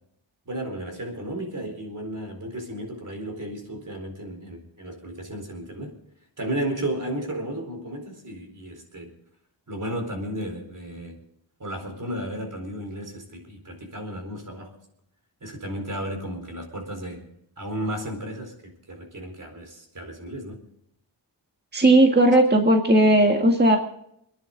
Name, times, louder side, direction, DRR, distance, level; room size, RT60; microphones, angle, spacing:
voice 1, 0.5-6.0 6.4-9.1 9.7-11.2 11.6-14.7 15.4-17.3 17.6-20.6, right 1 dB, 40° right, 4 dB, 4.4 m, -33 dB
voice 2, 21.7-23.8, right 1 dB, 20° right, 2 dB, 1.8 m, -17 dB
27.5 x 10.5 x 3.9 m, 0.74 s
wide cardioid pair, 125°, 46 cm